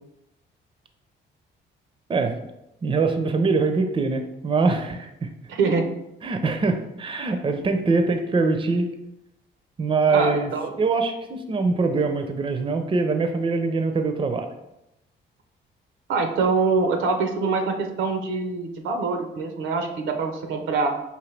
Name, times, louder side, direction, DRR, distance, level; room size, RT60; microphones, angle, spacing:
voice 1, 2.8-5.3 6.2-8.9 9.8-10.5 10.8-14.5, right 4 dB, 25° right, 7 dB, 0.5 m, -23 dB
voice 2, 5.5-5.9 10.1-10.7 16.1-20.9, right 4 dB, 85° right, 5 dB, 0.6 m, -24 dB
5.0 x 2.6 x 3.2 m, 0.88 s
cardioid pair, 90°, 20 cm